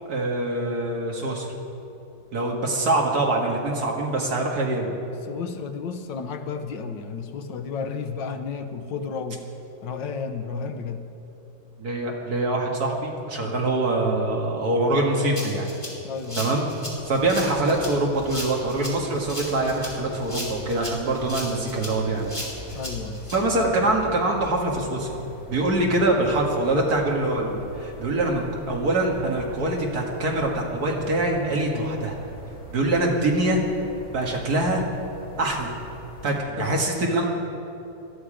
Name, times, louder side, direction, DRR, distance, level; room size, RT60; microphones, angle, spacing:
voice 1, 0.1-1.5 2.3-4.9 11.8-15.7 16.4-16.7 17.1-22.4 23.3-32.1 32.7-33.6 34.1-34.8 35.4-35.7 36.2-37.3, right 2 dB, 55° right, 0 dB, 2.2 m, -24 dB
voice 2, 5.2-9.4 9.8-11.0 13.4-13.5 16.0-16.5 22.7-23.3 31.7-31.9 36.3-36.8, left 5 dB, 80° left, 8 dB, 1.6 m, -32 dB
Rattle (instrument), 15.4-23.4, left 1 dB, 15° left, 2.8 m, -36 dB
sound 1, 17.0-36.4, equal, 45° left, 2.5 m, -42 dB
18.5 x 13.0 x 5.0 m, 3.0 s
omnidirectional pair, 2.0 m